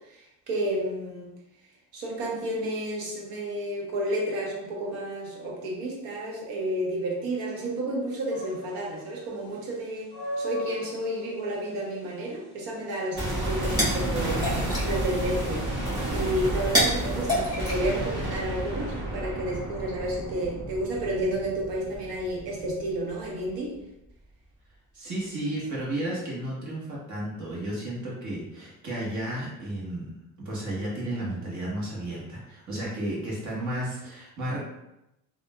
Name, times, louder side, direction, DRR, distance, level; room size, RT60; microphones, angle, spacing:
voice 1, 0.1-1.3 1.9-10.1 10.4-14.4 14.8-15.8 16.1-23.8, right 1 dB, 85° right, -2 dB, 1.0 m, -31 dB
sound 1, 8.3-19.0, equal, 70° right, 1.4 m, -41 dB
sound 2, 13.2-23.2 23.5-23.6, right 1 dB, 30° right, 1.3 m, -31 dB
sound 3, 13.3-18.6, equal, 10° right, 1.4 m, -30 dB
voice 2, 24.9-30.1 30.4-34.6, right 1 dB, 50° right, -5 dB, 1.4 m, -33 dB
3.6 x 2.5 x 2.2 m, 0.88 s
cardioid pair, 105°, 37 cm